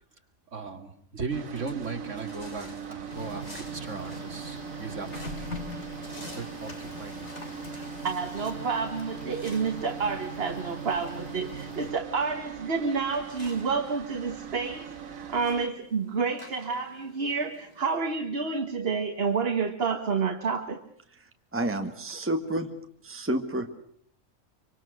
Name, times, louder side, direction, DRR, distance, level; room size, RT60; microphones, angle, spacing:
voice 1, 0.5-5.5 6.2-7.4, right 4 dB, 65° right, 5 dB, 2.7 m, -37 dB
sound 1, 1.3-15.7, right 8 dB, 90° right, 1.8 m, -41 dB
sound 2, 1.4-18.0, left 1 dB, 30° left, 4.2 m, -52 dB
Printer, 2.6-12.4, equal, 60° left, 3.3 m, -42 dB
voice 2, 7.7-20.8, right 5 dB, 50° right, 7 dB, 1.6 m, -29 dB
voice 3, 21.5-22.7 23.0-23.7, right 1 dB, 10° right, 6 dB, 1.5 m, -29 dB
25.0 x 25.0 x 6.5 m, 0.63 s
omnidirectional pair, 1.4 m